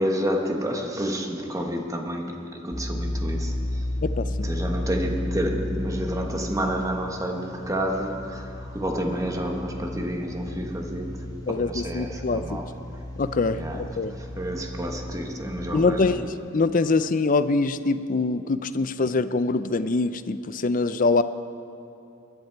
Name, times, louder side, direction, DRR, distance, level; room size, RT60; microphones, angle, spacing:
voice 1, 0.0-3.8 4.4-12.7 13.5-13.8 14.1-16.2, equal, 15° right, 1.2 m, -29 dB
sound 1, 2.7-16.2, left 1 dB, 20° left, 1.3 m, -33 dB
voice 2, 4.0-4.5 11.5-12.4 13.2-14.1 15.7-21.2, left 3 dB, 40° left, 0.5 m, -24 dB
20.5 x 11.0 x 4.6 m
head